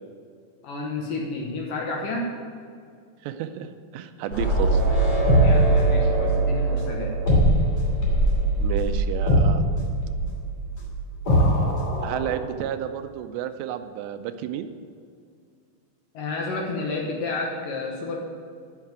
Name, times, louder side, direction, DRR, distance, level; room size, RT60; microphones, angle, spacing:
voice 1, 0.6-2.3 5.4-7.1 16.1-18.2, left 3 dB, 65° left, -1 dB, 2.3 m, -30 dB
voice 2, 3.2-4.8 8.6-9.6 11.4-11.7 12.0-14.7, right 10 dB, 85° right, 10 dB, 2.7 m, -31 dB
sound 1, 4.3-12.4, right 1 dB, 35° left, 2.9 m, -21 dB
11.0 x 5.7 x 8.8 m, 2.2 s
omnidirectional pair, 4.9 m